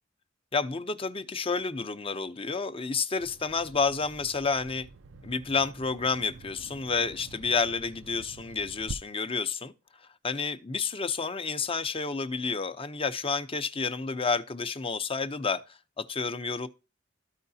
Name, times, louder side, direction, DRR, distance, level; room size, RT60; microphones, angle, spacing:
voice 1, 0.5-4.9 5.2-9.7 10.2-16.7, left 4 dB, 30° left, 0.6 m, -30 dB
Bird vocalization bird call bird song, 3.2-8.9, right 3 dB, 90° right, 0.6 m, -47 dB
14.0 x 4.7 x 2.7 m
head